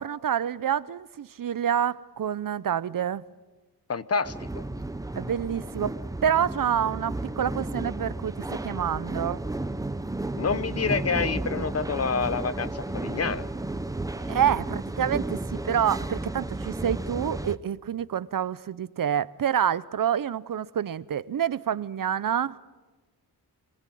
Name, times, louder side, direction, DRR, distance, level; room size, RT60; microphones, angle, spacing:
voice 1, 0.0-3.2 5.2-5.9 6.2-9.4 14.2-22.6, right 9 dB, 55° right, 0.7 m, -27 dB
voice 2, 3.9-4.7 10.4-13.5, left 5 dB, 40° left, 0.8 m, -28 dB
sound 1, 4.2-17.6, right 2 dB, 10° right, 0.7 m, -33 dB
25.0 x 18.5 x 7.6 m
wide cardioid pair, 120°, 39 cm